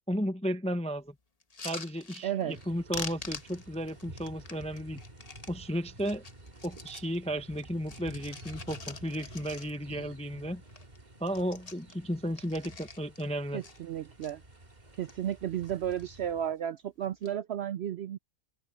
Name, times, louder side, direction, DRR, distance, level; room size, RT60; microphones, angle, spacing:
voice 1, 0.1-1.1 1.6-5.0 5.5-6.2 6.6-10.6 11.2-13.6, equal, 10° left, 0.4 m, -34 dB
sound 1, 1.4-2.7 2.9-5.5 6.0-7.2 7.5-10.0 10.3-10.4 10.7-11.0 11.2-13.3 13.6-14.3 14.9-15.4 15.6-16.2 17.0-17.3, left 4 dB, 30° left, 1.2 m, -45 dB
voice 2, 2.2-2.6 13.5-14.4 15.0-18.2, right 10 dB, 65° right, 0.7 m, -33 dB
sound 2, 2.5-16.5, right 1 dB, 30° right, 2.2 m, -51 dB
open air
omnidirectional pair, 1.5 m